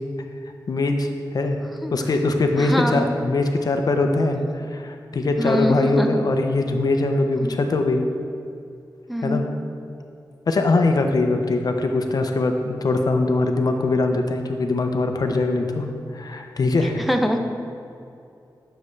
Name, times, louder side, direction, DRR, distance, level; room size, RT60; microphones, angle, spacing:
voice 1, 0.7-1.6 1.9-8.1 9.2-9.4 10.5-15.8 16.1-17.1, left 2 dB, 60° left, 5 dB, 0.6 m, -22 dB
voice 2, 2.6-3.1 5.4-6.2 7.4-7.5 9.1-9.5 16.8-17.4, equal, ahead, 4 dB, 0.5 m, -24 dB
9.6 x 6.7 x 3.2 m, 2.6 s
wide cardioid pair, 115°, 8 cm